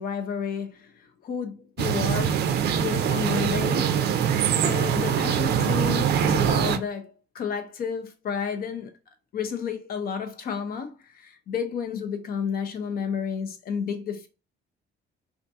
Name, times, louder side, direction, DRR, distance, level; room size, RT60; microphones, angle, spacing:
voice 1, 0.0-2.5 2.8-4.0 4.6-8.9 9.3-14.3, left 6 dB, 55° left, 0.6 m, -31 dB
sound 1, 1.8-6.8, right 8 dB, 65° right, 0.4 m, -23 dB
2.7 x 2.5 x 3.5 m
cardioid pair, 150°, 18 cm